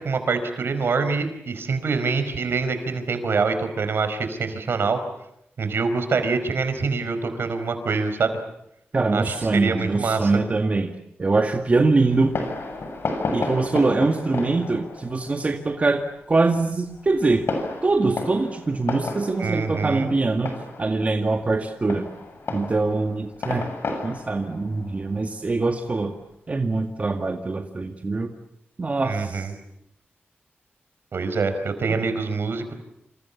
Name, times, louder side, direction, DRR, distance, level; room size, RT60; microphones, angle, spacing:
voice 1, 0.0-5.0 5.6-8.4 9.1-10.3 19.4-20.1 29.0-29.5 31.1-32.7, right 4 dB, 70° right, 9 dB, 4.9 m, -25 dB
voice 2, 8.9-10.9 11.2-12.4 13.3-16.0 16.3-17.4 17.8-22.1 22.5-23.7 24.0-26.1 26.5-28.3 28.8-29.5 31.9-32.0, right 3 dB, 35° right, 4 dB, 2.0 m, -23 dB
Fireworks, 12.1-26.3, left 3 dB, 65° left, 7.1 m, -33 dB
28.0 x 28.0 x 7.2 m, 0.78 s
wide cardioid pair, 110°, 4 cm